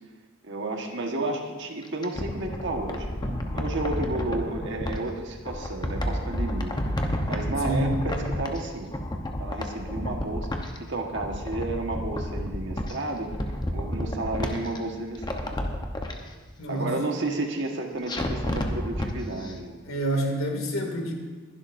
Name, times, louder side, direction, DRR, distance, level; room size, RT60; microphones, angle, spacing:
voice 1, 0.4-3.1 3.5-8.9 9.4-13.3 13.7-15.6 16.7-19.8, right 2 dB, 60° right, 2 dB, 1.5 m, -32 dB
sound 1, 1.8-5.0 5.4-8.7 8.9-10.8 11.1-12.9 13.3-14.8 15.1-16.1 18.1-19.1 19.4-19.5, left 1 dB, 20° left, 1.0 m, -30 dB
voice 2, 7.6-7.9 16.6-16.9 19.8-21.1, right 1 dB, 80° left, 1 dB, 2.4 m, -28 dB
21.5 x 11.0 x 2.7 m, 1.4 s
head